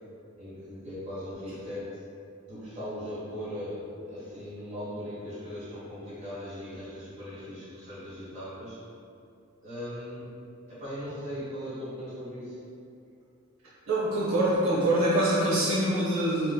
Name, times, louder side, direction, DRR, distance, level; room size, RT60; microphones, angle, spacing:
voice 1, 0.4-1.8 2.5-8.8 9.6-10.3 10.7-12.6, equal, 35° right, -10 dB, 1.2 m, -39 dB
voice 2, 13.9-16.5, right 1 dB, 80° right, -8 dB, 0.7 m, -25 dB
3.5 x 2.8 x 2.2 m, 2.5 s
head